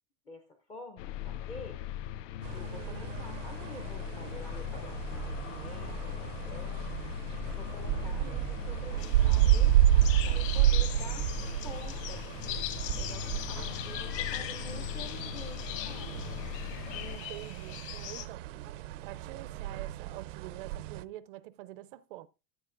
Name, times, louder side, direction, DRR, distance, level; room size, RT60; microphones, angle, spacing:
voice 1, 0.3-1.8 2.5-7.1 7.4-9.8 10.2-16.3, left 2 dB, 10° left, 0.4 m, -48 dB
sound 1, 1.0-17.2, left 12 dB, 85° left, 0.6 m, -40 dB
sound 2, 2.4-21.0, right 12 dB, 90° right, 0.6 m, -31 dB
sound 3, 9.0-18.3, left 12 dB, 45° left, 1.4 m, -41 dB
voice 2, 16.9-18.4 19.0-22.3, right 15 dB, 45° right, 0.4 m, -46 dB
14.0 x 10.0 x 2.5 m
supercardioid pair, 170°, 37 cm